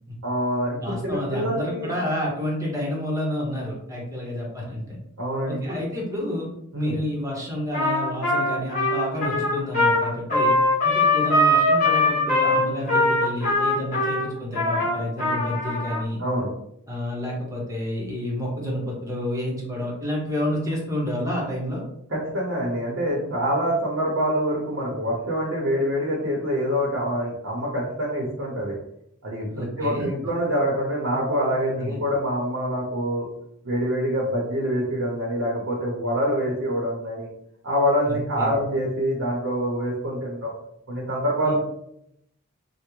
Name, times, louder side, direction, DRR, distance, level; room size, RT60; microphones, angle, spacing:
voice 1, 0.2-1.9 5.2-5.8 6.7-7.0 16.2-16.5 22.1-28.7 29.2-33.3 33.6-37.3 37.6-40.5 40.9-41.5, equal, 60° right, -3 dB, 0.7 m, -25 dB
voice 2, 0.8-5.0 5.5-6.5 6.7-10.6 10.8-16.2 16.9-21.8 29.5-30.1 31.8-32.0 38.1-38.5 41.4-41.5, left 1 dB, 15° right, -3 dB, 0.8 m, -29 dB
Trumpet, 7.7-16.0, left 1 dB, 40° left, 1.3 m, -21 dB
3.3 x 2.0 x 3.0 m, 0.76 s
head